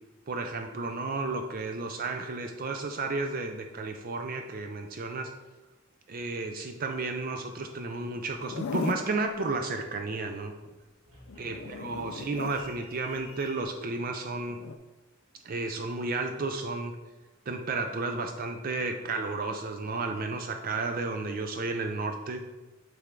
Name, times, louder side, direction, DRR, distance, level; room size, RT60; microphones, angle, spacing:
voice 1, 0.3-5.3 6.1-10.5 11.4-14.6 15.4-16.9 17.5-22.4, right 3 dB, 45° right, 5 dB, 0.4 m, -32 dB
Zipper (clothing), 8.3-9.1 11.3-12.6 14.5-14.8, left 5 dB, 90° left, 0.4 m, -37 dB
sound 1, 9.3-9.9 10.3-13.6, left 1 dB, 80° right, 1.9 m, -55 dB
9.2 x 3.4 x 3.7 m, 1.2 s
head